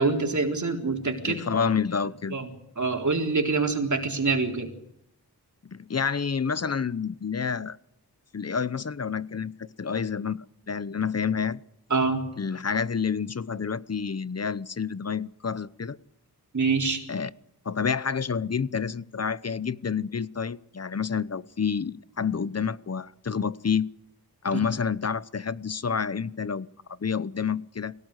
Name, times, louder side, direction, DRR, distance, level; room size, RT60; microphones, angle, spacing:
voice 1, 0.0-1.4 2.3-2.5 2.8-4.7 11.9-12.2 16.5-17.0 24.5-24.6, right 4 dB, 50° right, 4.1 m, -25 dB
voice 2, 1.2-2.4 5.6-7.8 8.3-11.6 12.4-16.0 17.1-17.3 17.6-23.9 24.4-26.7 27.0-27.9, left 6 dB, 40° left, 0.9 m, -29 dB
24.5 x 18.0 x 8.3 m
wide cardioid pair, 75°, 38 cm